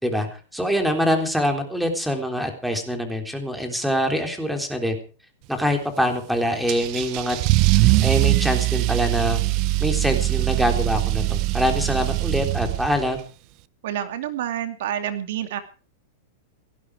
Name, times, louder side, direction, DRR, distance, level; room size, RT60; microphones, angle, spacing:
voice 1, 0.0-5.0 5.5-7.4 8.0-9.4 9.8-13.2, equal, ahead, 5 dB, 3.6 m, -24 dB
Car / Engine starting / Accelerating revving vroom, 6.7-13.2, right 19 dB, 40° right, 0.7 m, -22 dB
voice 2, 13.8-15.6, right 10 dB, 65° right, 8 dB, 2.5 m, -28 dB
18.0 x 15.5 x 4.9 m, 0.38 s
supercardioid pair, 145°, 0 cm